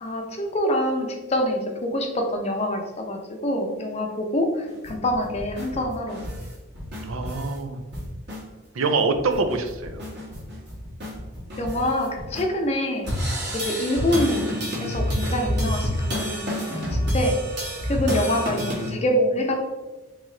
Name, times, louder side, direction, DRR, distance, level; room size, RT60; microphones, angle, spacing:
voice 1, 0.0-6.2 11.6-13.1 13.5-14.5 14.8-17.4 17.8-19.5, left 1 dB, 30° left, 2 dB, 0.5 m, -25 dB
sound 1, 4.7-7.6 7.9-8.4 8.8-8.9 9.1-12.4 13.0-18.9, equal, 50° right, 1.5 m, -29 dB
voice 2, 7.0-7.8 8.7-10.0, right 3 dB, 75° right, 7 dB, 0.4 m, -25 dB
3.2 x 3.0 x 3.7 m, 1.2 s
head